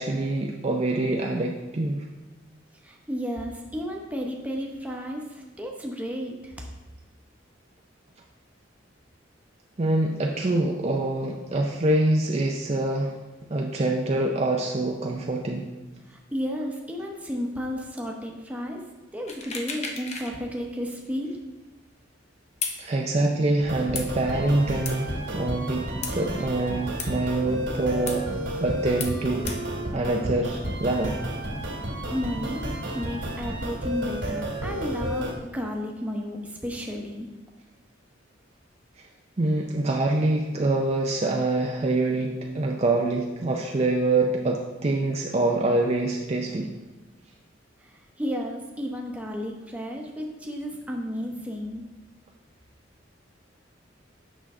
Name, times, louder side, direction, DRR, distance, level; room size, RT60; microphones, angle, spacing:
voice 1, 0.0-2.0 9.8-13.2 13.5-15.7 22.8-28.3 28.6-29.5 29.9-31.2 39.0-39.1 39.4-46.7, right 2 dB, 35° right, 1 dB, 0.5 m, -25 dB
voice 2, 2.8-6.7 16.1-18.8 19.1-21.4 32.1-37.3 47.8-51.8, equal, 5° right, 0 dB, 0.9 m, -33 dB
sound 1, 19.3-20.4 20.7-20.8 22.6-22.8 24.0-24.1 24.9-25.0 26.0-26.2 27.0-27.1 28.1-28.2 29.0-29.2 29.5-29.6, left 5 dB, 35° left, 0.7 m, -33 dB
sound 2, 23.6-35.3, right 1 dB, 75° right, 2.1 m, -32 dB
8.2 x 6.2 x 3.7 m, 1.2 s
head